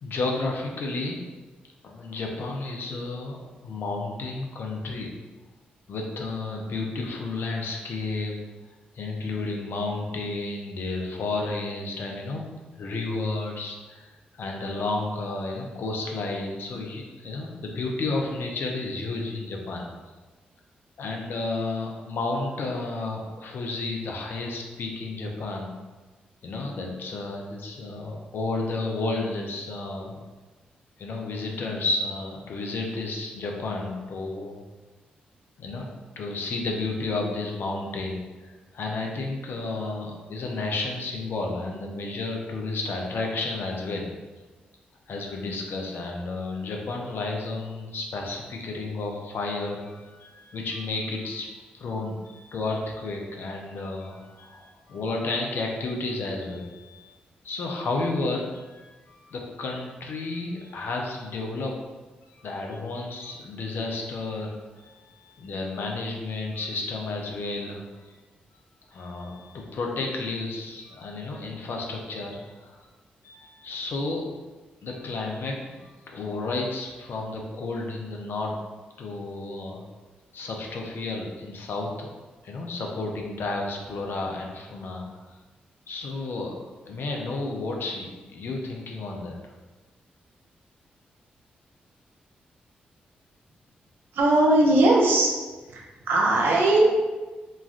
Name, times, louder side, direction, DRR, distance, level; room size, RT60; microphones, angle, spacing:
voice 1, 0.0-1.3 1.8-5.1 5.9-8.4 8.9-19.9 21.0-25.8 26.4-30.2 31.0-34.6 35.6-44.1 45.1-57.1 57.4-61.8 62.3-64.6 64.8-68.2 68.9-72.9 73.2-74.3 74.8-78.6 79.0-79.8 80.3-82.1 82.4-85.2 85.9-86.6 86.8-89.4, left 3 dB, 65° left, 1 dB, 0.5 m, -32 dB
voice 2, 94.1-95.3 95.7-96.9, right 2 dB, 70° right, -1 dB, 0.6 m, -19 dB
3.1 x 2.3 x 2.4 m, 1.3 s
hypercardioid pair, 40°, 4 cm